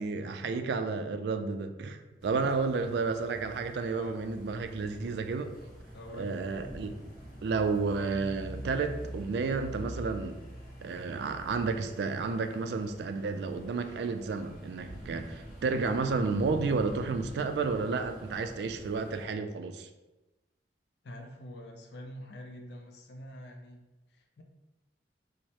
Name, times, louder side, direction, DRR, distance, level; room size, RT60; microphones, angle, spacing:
voice 1, 0.0-5.5 6.1-6.9 7.4-10.4 10.8-19.9, right 4 dB, 75° right, 8 dB, 0.3 m, -31 dB
sound 1, 2.2-19.2, equal, 50° left, 0.9 m, -46 dB
voice 2, 2.3-2.6 3.9-4.2 5.9-6.4 21.0-23.8 24.1-24.4, left 1 dB, 75° left, 3 dB, 0.5 m, -46 dB
4.6 x 2.0 x 2.8 m, 1.1 s
head